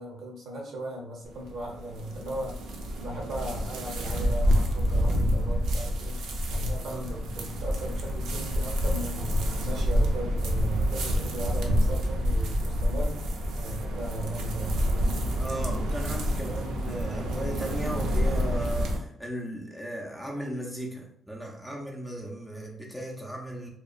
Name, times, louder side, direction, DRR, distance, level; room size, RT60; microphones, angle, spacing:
voice 1, 0.0-2.6 3.0-6.2 6.5-15.3, right 1 dB, 65° right, -1 dB, 0.8 m, -37 dB
sound 1, 1.3-19.0, equal, 85° right, 0.4 m, -28 dB
voice 2, 15.4-23.7, equal, ahead, -2 dB, 0.5 m, -36 dB
2.8 x 2.2 x 2.4 m, 0.70 s
cardioid pair, 100°, 0 cm